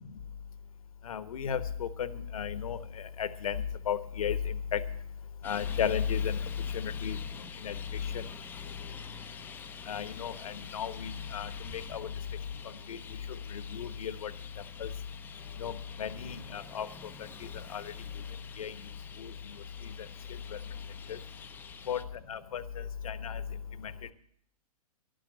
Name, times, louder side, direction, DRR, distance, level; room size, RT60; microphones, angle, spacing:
voice 1, 1.1-2.8 3.2-3.6 3.9-4.8 5.4-6.4 6.7-7.2 7.6-7.7 8.1-8.2 9.9-12.1 12.9-13.0 13.5-14.3 14.8-14.9 15.6-16.9 17.4-17.8 18.6-18.7 19.2-19.3 21.1-21.2 21.9-22.0 22.3-22.6 23.0-23.4 23.8-23.9, left 8 dB, 60° left, 13 dB, 1.1 m, -34 dB
Traffic noise roadway noise, 5.4-22.0, left 6 dB, 10° left, 0.6 m, -48 dB
11.5 x 9.3 x 7.9 m, 0.67 s
figure-of-eight pair, 125°, 20 cm